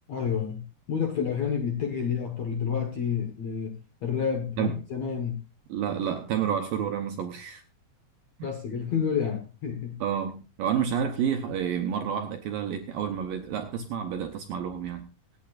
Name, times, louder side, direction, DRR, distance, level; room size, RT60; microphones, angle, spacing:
voice 1, 0.1-5.4 8.4-10.0, left 7 dB, 60° left, 3 dB, 1.8 m, -29 dB
voice 2, 5.7-7.6 8.4-8.5 10.0-15.1, right 8 dB, 75° right, 5 dB, 2.1 m, -29 dB
25.5 x 8.9 x 2.5 m, 0.28 s
omnidirectional pair, 5.1 m